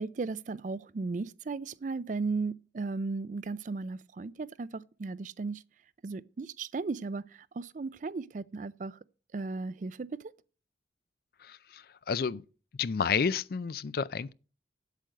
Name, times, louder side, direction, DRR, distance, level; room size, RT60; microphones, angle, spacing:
voice 1, 0.0-5.6 6.0-9.0 9.3-10.3, right 3 dB, 45° right, 0.4 m, -36 dB
voice 2, 11.4-12.4 12.8-14.3, left 6 dB, 55° left, 0.4 m, -31 dB
8.3 x 7.7 x 6.5 m
head